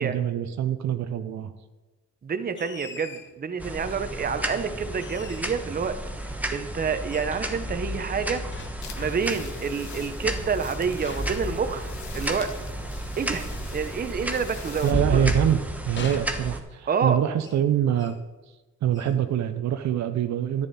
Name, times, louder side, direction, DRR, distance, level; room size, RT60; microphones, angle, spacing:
voice 1, 0.0-1.5 14.8-18.2 18.8-20.7, right 10 dB, 65° right, 10 dB, 0.7 m, -25 dB
voice 2, 2.2-6.0 6.5-8.4 9.0-12.5 13.2-15.2 16.9-17.2, right 6 dB, 30° right, 10 dB, 0.8 m, -28 dB
sound 1, 2.5-3.4 5.0-5.7 7.1-7.4 8.5-9.5 11.0-12.2 14.4-15.6 16.0-16.9 17.4-17.7 18.0-18.3 18.9-19.2, left 5 dB, 40° left, 0.9 m, -44 dB
sound 2, 3.6-16.6, right 1 dB, 5° right, 1.1 m, -32 dB
sound 3, 8.8-14.9, left 7 dB, 70° left, 1.3 m, -46 dB
10.5 x 9.1 x 4.2 m, 1.1 s
cardioid pair, 90°, 30 cm